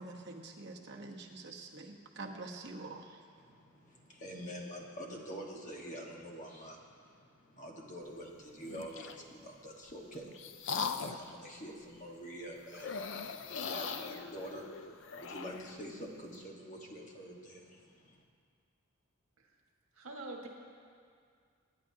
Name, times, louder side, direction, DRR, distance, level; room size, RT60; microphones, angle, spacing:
voice 1, 0.0-3.2, right 2 dB, 50° right, 0 dB, 1.2 m, -46 dB
voice 2, 3.4-18.2, equal, 35° left, -1 dB, 1.6 m, -47 dB
sound 1, 8.6-9.2 9.9-11.3 12.7-15.8, left 5 dB, 60° left, 0.5 m, -40 dB
voice 3, 19.9-20.5, right 2 dB, 75° right, -1 dB, 1.8 m, -45 dB
24.5 x 10.0 x 2.9 m, 2.1 s
head